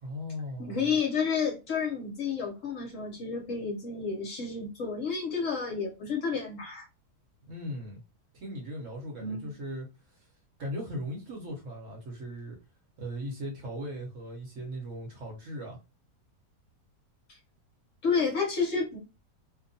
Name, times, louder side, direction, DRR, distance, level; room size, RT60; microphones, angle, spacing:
voice 1, 0.0-0.9 7.4-8.0 8.3-10.3 10.6-12.6 13.0-15.8, equal, 55° right, 1.0 m, -38 dB
voice 2, 0.6-6.8 9.2-9.5 17.3-17.4 18.0-19.0, left 5 dB, 60° left, 0.9 m, -30 dB
2.8 x 2.2 x 2.6 m
omnidirectional pair, 1.8 m